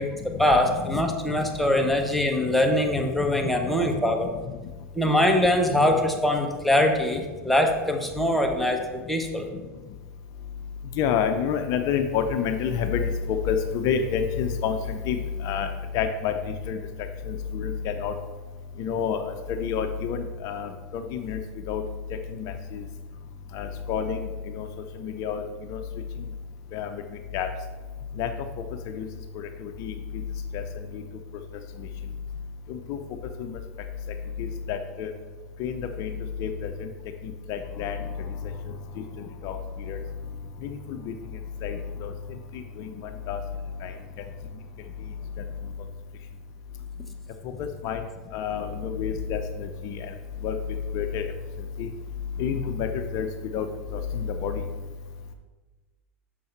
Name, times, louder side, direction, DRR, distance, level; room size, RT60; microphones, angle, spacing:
voice 1, 0.0-4.3 4.9-9.5, left 1 dB, ahead, 2 dB, 1.0 m, -23 dB
voice 2, 11.0-13.0 13.5-15.2 15.4-15.7 15.9-16.3 16.7-16.8 17.3-18.1 18.8-19.3 19.6-21.4 21.7-21.8 22.4-22.8 23.5-24.2 24.6-24.7 25.0-25.4 25.7-25.8 26.7-27.0 27.3-27.5 28.2-28.3 28.9-29.1 29.6-29.9 30.5-30.6 30.9-31.0 32.7-33.0 33.4-33.6 34.4-35.1 35.6-36.1 36.4-36.7 37.5-38.0 39.4-39.6 39.9-40.0 40.6-40.7 41.0-41.1 41.6-42.1 43.3-43.4 43.8-43.9 47.6-48.0 48.3-49.4 49.8-50.0 50.4-50.6 50.9-51.2 51.8-51.9 52.4-53.3 53.5-53.7 53.9-54.6, left 7 dB, 55° left, 7 dB, 0.6 m, -28 dB
6.5 x 5.4 x 4.5 m, 1.3 s
hypercardioid pair, 95°, 8 cm